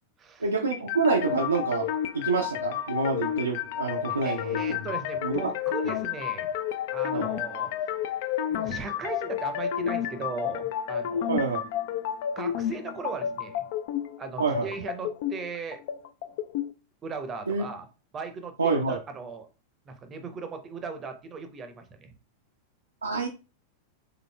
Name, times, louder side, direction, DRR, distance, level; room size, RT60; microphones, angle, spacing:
voice 1, 0.4-1.9 2.1-4.9 5.2-5.4 7.1-7.3 11.3-11.6 14.4-14.7 17.5-17.7 18.6-19.0 23.0-23.3, right 4 dB, 80° right, 0 dB, 0.4 m, -27 dB
sound 1, 0.7-16.7, left 10 dB, 50° left, 0.3 m, -31 dB
voice 2, 4.1-6.5 6.9-7.7 8.0-8.1 8.5-11.5 12.4-13.6 14.2-15.8 17.0-17.9 18.1-19.5 19.9-22.1, right 4 dB, 25° right, 8 dB, 0.6 m, -38 dB
3.7 x 3.4 x 2.2 m, 0.32 s
figure-of-eight pair, 90°, 0 cm